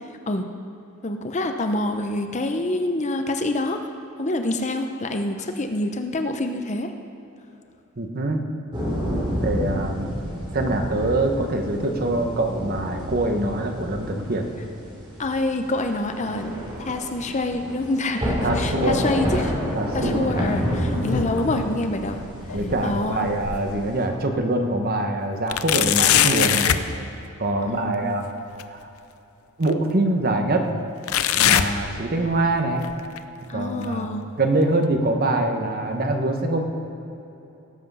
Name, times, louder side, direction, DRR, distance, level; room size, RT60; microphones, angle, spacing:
voice 1, 1.0-3.8 4.2-6.9 15.2-19.5 19.9-22.2 22.8-23.3 27.7-28.2 33.5-34.2, left 2 dB, 35° left, 6 dB, 0.7 m, -26 dB
voice 2, 8.0-8.4 9.4-10.1 10.5-14.4 18.4-19.0 19.8-20.3 22.5-26.8 27.4-28.3 28.7-28.8 29.6-30.6 31.4-32.9 33.5-34.1 34.4-36.6, right 2 dB, 45° right, 4 dB, 1.1 m, -24 dB
sound 1, 8.7-24.0, equal, 25° right, 2.9 m, -29 dB
sound 2, 20.7-21.6 22.0-23.9 24.4-24.5 25.5-26.9 28.6-28.7 29.6-29.7 31.1-32.5 32.8-33.2 33.8-33.9 34.8-34.9, left 10 dB, 80° left, 0.6 m, -23 dB
18.0 x 7.7 x 5.5 m, 2.9 s
head